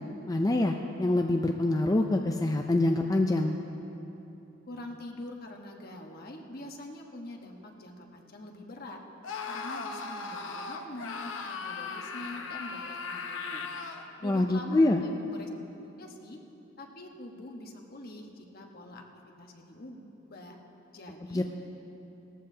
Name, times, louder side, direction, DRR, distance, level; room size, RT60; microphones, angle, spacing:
voice 1, 0.3-3.6 14.2-15.0 21.3-21.4, left 2 dB, 20° left, 3 dB, 0.4 m, -25 dB
voice 2, 4.7-9.0 9.5-13.7 14.2-15.5 15.8-16.4 16.8-19.0 19.4-20.6 20.9-21.4, left 1 dB, 55° left, 1 dB, 1.3 m, -44 dB
Screaming, 9.2-14.1, left 4 dB, 90° left, 0.9 m, -38 dB
19.0 x 14.0 x 2.8 m, 3.0 s
head